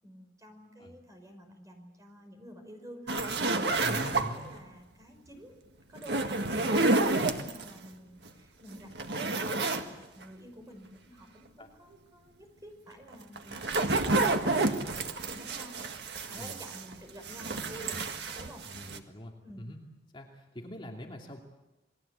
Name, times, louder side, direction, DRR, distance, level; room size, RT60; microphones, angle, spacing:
voice 1, 0.0-4.1 4.3-5.5 5.9-18.1 18.3-18.7 19.4-19.7, equal, 20° right, 4 dB, 5.6 m, -50 dB
sound 1, 3.1-4.6 6.0-7.7 8.3-8.4 8.7-9.9 10.2-10.3 13.1-16.9 17.2-19.0, right 2 dB, 65° right, 1.7 m, -29 dB
voice 2, 3.8-4.5 11.6-11.7 16.3-16.5 18.7-19.8 20.1-21.4, equal, 30° left, 0 dB, 2.7 m, -43 dB
28.5 x 21.5 x 8.3 m, 1.0 s
head